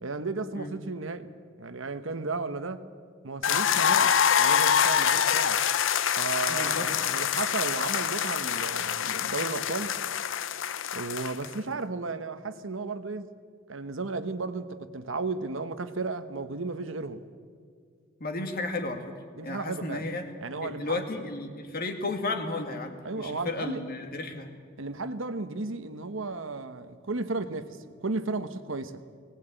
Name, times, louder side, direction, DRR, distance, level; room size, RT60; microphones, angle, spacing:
voice 1, 0.0-1.3 1.6-2.9 3.2-4.1 4.4-5.6 6.2-10.0 10.9-13.3 13.7-17.2 19.4-20.1 20.4-21.0 23.0-23.8 24.8-29.0, right 3 dB, 70° right, 1.1 m, -34 dB
sound 1, 3.4-11.5, left 8 dB, 65° left, 0.7 m, -25 dB
voice 2, 6.5-6.9 18.2-19.1 19.4-20.3 20.6-24.5, left 2 dB, 50° left, 2.2 m, -33 dB
19.0 x 18.5 x 9.0 m
head